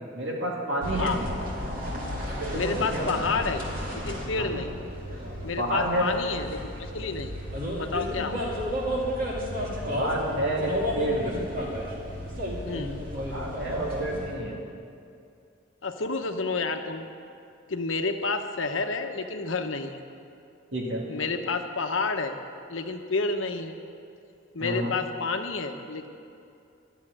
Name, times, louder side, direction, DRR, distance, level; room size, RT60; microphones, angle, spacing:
voice 1, 0.1-1.1 2.4-3.2 4.4-4.5 5.6-6.1 9.8-11.5 13.2-14.6 20.7-21.1 24.6-24.9, right 1 dB, 65° right, -3 dB, 2.0 m, -29 dB
sound 1, 0.8-14.3, equal, 45° right, 2.6 m, -32 dB
voice 2, 2.5-3.6 3.9-4.7 5.4-7.3 7.8-8.4 12.7-12.9 15.8-17.1 17.7-20.0 21.1-22.3 22.7-23.7 24.5-26.1, left 4 dB, 80° left, 5 dB, 0.9 m, -30 dB
13.0 x 7.3 x 9.9 m, 2.5 s
head